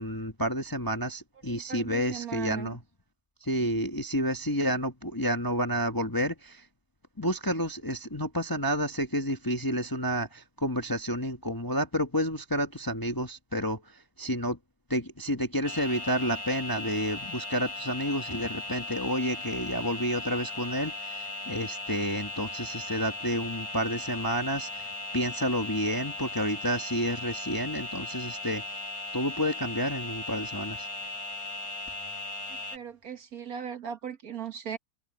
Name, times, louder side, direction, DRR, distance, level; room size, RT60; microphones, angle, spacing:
voice 1, 0.0-2.8 3.4-6.6 7.2-13.8 14.2-14.6 14.9-24.9 25.1-28.6 29.1-30.9, equal, 15° left, 1.0 m, -30 dB
voice 2, 1.4-2.8 32.7-34.8, right 8 dB, 55° right, 1.7 m, -38 dB
sound 1, 15.6-32.8, left 2 dB, 55° left, 4.9 m, -37 dB
omnidirectional pair, 2.0 m